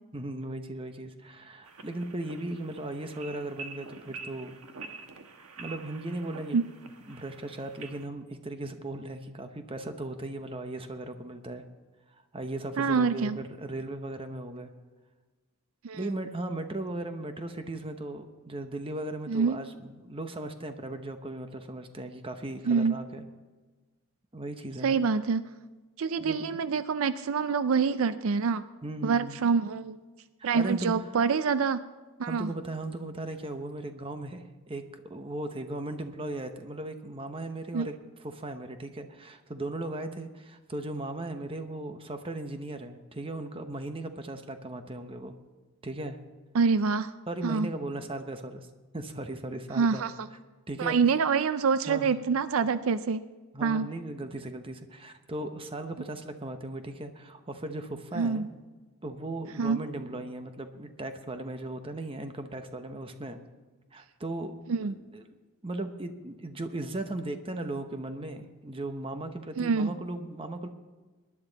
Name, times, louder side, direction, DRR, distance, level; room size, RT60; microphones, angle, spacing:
voice 1, 0.1-4.5 5.6-6.6 7.1-11.6 12.1-14.7 15.9-23.2 24.3-25.0 26.2-26.4 28.8-29.4 30.4-31.1 32.3-38.0 38.2-45.3 45.8-46.2 47.3-48.7 48.9-50.0 50.7-51.0 51.9-52.1 53.5-58.5 59.0-63.4 63.9-64.5 64.8-65.4 65.6-70.7, right 2 dB, 25° right, 7 dB, 0.9 m, -37 dB
sound 1, 1.6-8.0, right 4 dB, 85° right, 1.2 m, -46 dB
voice 2, 12.8-13.4 15.8-16.0 19.3-19.6 22.7-23.0 24.8-25.5 26.0-28.6 29.0-30.0 30.4-31.8 32.2-32.5 37.7-37.9 46.5-47.1 47.4-47.7 49.7-50.3 50.8-53.2 53.6-53.9 58.1-58.5 59.6-59.9 64.7-64.9 69.6-69.9, right 5 dB, 70° right, 13 dB, 0.4 m, -26 dB
19.0 x 11.0 x 4.0 m, 1.3 s
head